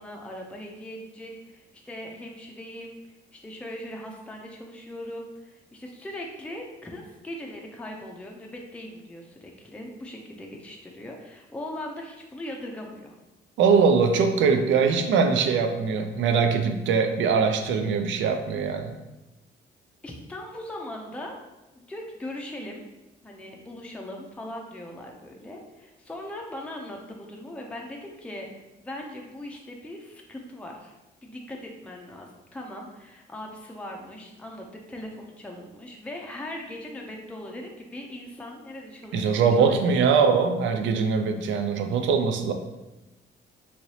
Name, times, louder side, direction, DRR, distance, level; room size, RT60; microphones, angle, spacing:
voice 1, 0.0-13.2 20.0-21.4 21.7-22.8 23.2-30.9 31.2-39.3 39.6-39.8, left 1 dB, 5° left, 0 dB, 0.5 m, -39 dB
voice 2, 13.6-18.9 39.1-42.5, right 5 dB, 75° right, 6 dB, 0.4 m, -22 dB
3.1 x 2.8 x 2.7 m, 1.0 s
cardioid pair, 90°, 20 cm